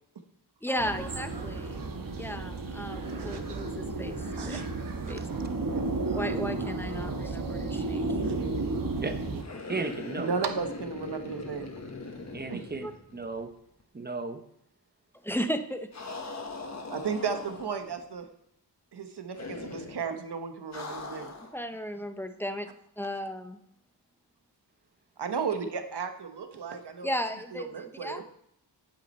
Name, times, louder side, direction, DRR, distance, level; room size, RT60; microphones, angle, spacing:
voice 1, 0.6-1.8 2.2-4.6 5.1-5.2 6.1-8.3 12.8-12.9 15.2-15.9 21.5-22.7 23.0-23.6 27.0-28.2, equal, 5° left, 0.6 m, -35 dB
sound 1, 0.8-9.4, right 3 dB, 55° right, 1.2 m, -33 dB
voice 2, 3.2-3.6 4.4-5.0 5.7-5.8 8.2-8.3 10.2-11.7 12.5-12.6 16.9-18.3 18.9-21.3 25.2-27.1 27.5-28.2, right 6 dB, 70° right, 1.2 m, -34 dB
voice 3, 9.0-9.4 9.7-10.3 12.3-13.5 13.9-14.4, right 4 dB, 25° right, 0.8 m, -35 dB
sound 2, 9.4-13.5 13.8-13.9 15.9-17.9 19.4-20.0 20.7-21.6, left 3 dB, 40° left, 1.3 m, -40 dB
9.2 x 8.7 x 4.3 m
wide cardioid pair, 140°, 41 cm